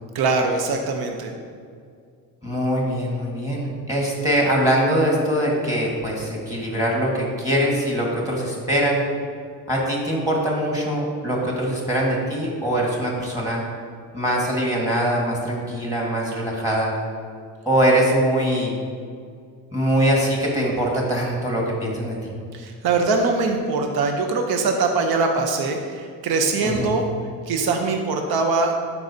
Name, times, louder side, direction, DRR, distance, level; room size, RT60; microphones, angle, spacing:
voice 1, 0.1-1.3 22.5-27.1 27.5-28.7, right 3 dB, 80° right, 3 dB, 0.8 m, -22 dB
voice 2, 2.4-9.0 9.7-13.6 14.1-16.9 17.6-18.7 19.7-22.3 26.6-26.9, right 1 dB, 10° right, -3 dB, 1.5 m, -22 dB
11.5 x 4.8 x 2.7 m, 2.2 s
cardioid pair, 110°, 36 cm